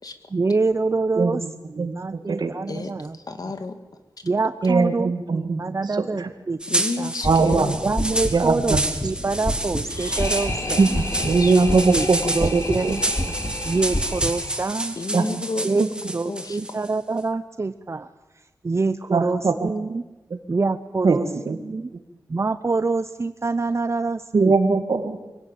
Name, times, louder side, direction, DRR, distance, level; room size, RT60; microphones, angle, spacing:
voice 1, 0.3-1.4 1.7-3.2 4.2-7.1 7.8-8.8 9.0-10.8 11.9-13.0 13.6-15.0 15.6-18.1 18.6-20.0 20.5-21.3 21.6-21.9 22.3-24.5, right 3 dB, 40° right, 12 dB, 0.7 m, -26 dB
voice 2, 1.8-2.5 4.6-5.6 5.9-6.3 7.2-7.8 8.3-8.9 10.8-10.9 11.2-12.2 12.5-12.9 15.1-15.3 19.1-19.7 20.3-20.4 21.0-21.6 24.3-25.2, right 4 dB, 75° right, 6 dB, 2.3 m, -20 dB
voice 3, 2.7-3.8 6.7-7.8 10.6-10.8 11.1-12.3 15.0-15.7 16.2-16.8, left 3 dB, 60° left, 8 dB, 2.2 m, -32 dB
sound 1, 6.6-16.9, right 1 dB, 15° right, 2.0 m, -29 dB
sound 2, 7.2-14.3, equal, 25° left, 3.1 m, -30 dB
sound 3, 9.9-15.0, left 1 dB, 40° left, 5.6 m, -34 dB
24.5 x 17.0 x 9.2 m, 1.1 s
wide cardioid pair, 80°, 7 cm